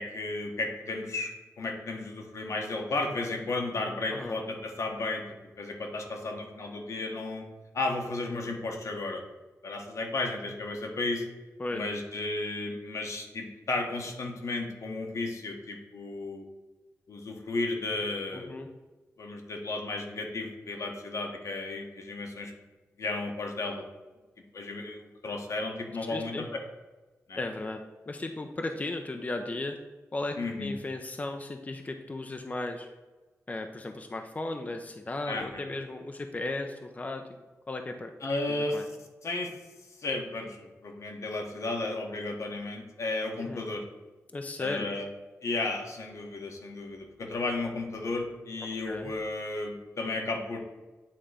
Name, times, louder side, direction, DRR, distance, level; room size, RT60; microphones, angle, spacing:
voice 1, 0.0-5.2 5.6-7.4 7.7-9.2 9.6-11.3 11.7-16.4 17.1-18.5 19.2-22.5 23.0-23.8 24.5-26.6 27.3-27.4 30.4-30.7 35.3-35.6 38.2-38.8 39.2-39.5 40.0-43.8 44.6-45.1 45.4-50.6, left 2 dB, 70° left, 2 dB, 1.2 m, -33 dB
voice 2, 18.3-18.7 26.1-26.4 27.3-29.8 30.1-32.9 33.5-37.2 37.7-38.1 38.7-38.9 43.4-43.6 44.3-44.9 48.8-49.1, left 2 dB, 30° left, 5 dB, 0.5 m, -35 dB
8.6 x 3.0 x 4.9 m, 1.2 s
wide cardioid pair, 95°, 5 cm